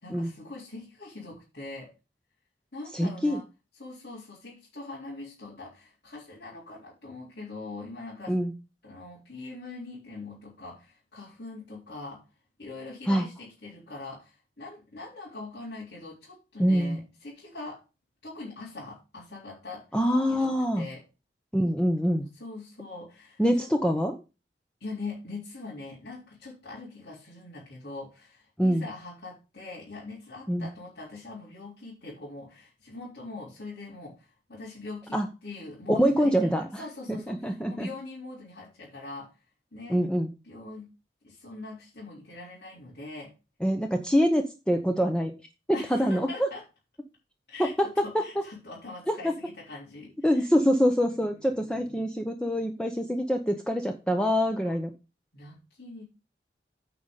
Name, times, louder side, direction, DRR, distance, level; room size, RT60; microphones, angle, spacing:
voice 1, 0.0-1.9 2.7-3.5 3.8-8.4 8.8-12.2 12.6-17.8 18.2-19.9 20.3-21.0 22.4-23.7 24.8-39.3 39.7-40.0 40.4-40.9 41.2-43.3 45.7-46.6 47.5-50.5 51.1-52.0 54.6-54.8 55.3-56.0, left 3 dB, 70° left, -6 dB, 3.8 m, -42 dB
voice 2, 2.9-3.4 8.3-8.5 13.1-13.3 16.6-17.0 19.9-20.8 21.5-22.3 23.4-24.2 28.6-28.9 30.5-30.7 35.1-35.3 35.9-36.8 37.1-37.9 39.9-40.3 43.6-45.3 45.9-46.5 47.6-47.9 48.1-48.2 49.1-49.3 50.2-54.9, equal, 5° left, 4 dB, 0.8 m, -25 dB
9.4 x 5.1 x 5.6 m, 0.29 s
head